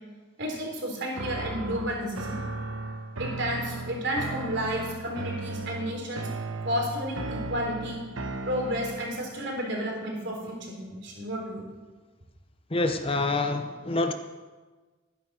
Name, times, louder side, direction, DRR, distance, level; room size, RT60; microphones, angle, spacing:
voice 1, 0.4-2.4 3.2-6.3 6.6-8.0 8.5-11.6, equal, 55° right, 0 dB, 3.8 m, -31 dB
sound 1, 1.1-9.2, right 3 dB, 75° right, 1.0 m, -36 dB
voice 2, 12.7-14.1, left 2 dB, 25° left, 8 dB, 0.7 m, -26 dB
13.5 x 10.0 x 6.2 m, 1.3 s
head